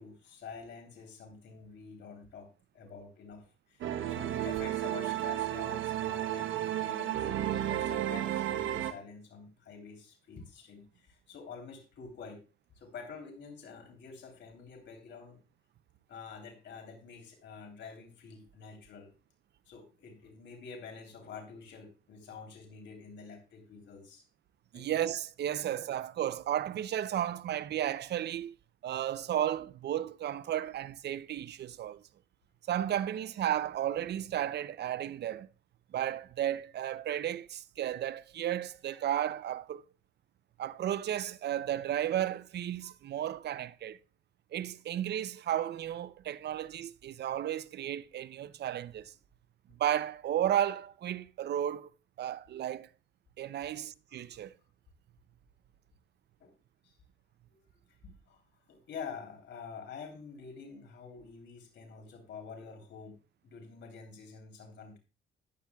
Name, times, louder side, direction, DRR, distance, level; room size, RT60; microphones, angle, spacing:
voice 1, 0.0-2.5 2.7-7.3 7.6-12.4 12.7-15.4 16.1-19.1 19.7-24.2 24.7-24.9 53.6-53.7 54.1-54.4 56.4-56.5 56.8-56.9 57.5-57.6 58.0-58.4 58.7-63.2 63.4-65.0, left 5 dB, 65° left, 3.2 m, -48 dB
sound 1, 3.8-8.9, right 12 dB, 80° right, 1.0 m, -32 dB
voice 2, 24.7-28.5 28.8-32.0 32.7-35.5 35.9-39.8 40.6-44.0 44.5-49.1 49.8-51.9 52.2-52.9 53.4-54.5, right 11 dB, 60° right, 0.6 m, -33 dB
14.0 x 10.0 x 2.3 m
cardioid pair, 90°, 20 cm